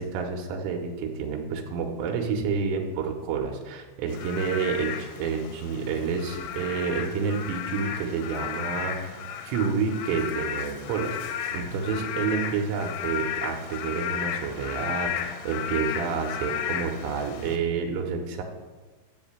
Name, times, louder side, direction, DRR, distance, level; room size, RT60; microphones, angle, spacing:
voice 1, 0.0-11.2 11.5-18.4, right 5 dB, 85° right, 2 dB, 3.4 m, -29 dB
Frog / Rain, 4.1-17.6, left 9 dB, 80° left, 2.8 m, -34 dB
18.0 x 7.3 x 2.2 m, 1.3 s
omnidirectional pair, 5.6 m